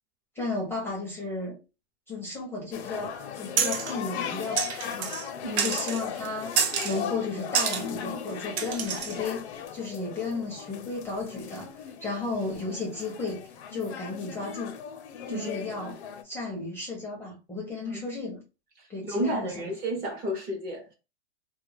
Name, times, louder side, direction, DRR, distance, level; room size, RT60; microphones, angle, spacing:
voice 1, 0.3-1.6 2.1-5.1 5.6-6.5 6.8-14.7 15.3-16.0 16.2-18.4 18.9-19.7, left 3 dB, 5° left, 0.5 m, -34 dB
sound 1, 2.7-16.2, left 8 dB, 75° left, 0.6 m, -38 dB
sound 2, 3.6-3.9 4.6-5.3 5.6-6.0 6.6-7.0 7.5-7.8 8.6-9.2, right 7 dB, 85° right, 0.7 m, -28 dB
voice 2, 18.8-20.9, right 1 dB, 30° right, 0.7 m, -32 dB
2.3 x 2.1 x 3.2 m
supercardioid pair, 145°, 33 cm